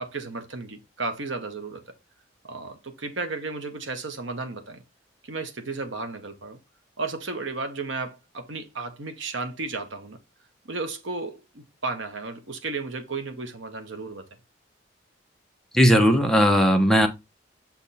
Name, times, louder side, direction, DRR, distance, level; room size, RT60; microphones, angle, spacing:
voice 1, 0.0-1.8 2.4-4.8 5.2-6.6 7.0-10.2 10.6-14.3, right 3 dB, 80° right, 1.2 m, -33 dB
voice 2, 15.7-17.1, equal, 5° left, 1.0 m, -17 dB
7.3 x 3.5 x 4.2 m
head